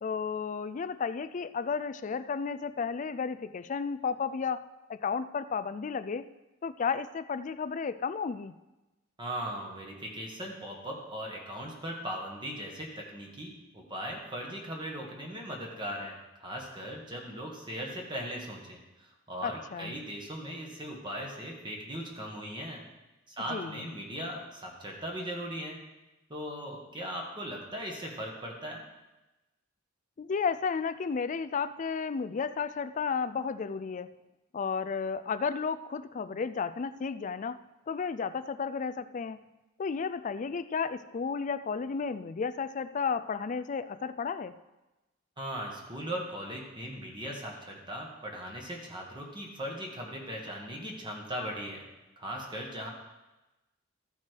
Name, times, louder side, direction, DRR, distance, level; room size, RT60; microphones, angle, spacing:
voice 1, 0.0-6.3 6.6-8.6 19.4-19.9 23.5-23.9 30.2-34.1 34.5-39.4 39.8-44.6, left 5 dB, 40° left, 13 dB, 0.4 m, -33 dB
voice 2, 9.2-22.8 23.3-25.8 26.3-28.8 45.4-51.8 52.2-52.9, equal, 25° right, -1 dB, 1.6 m, -39 dB
14.0 x 5.8 x 4.6 m, 1.0 s
head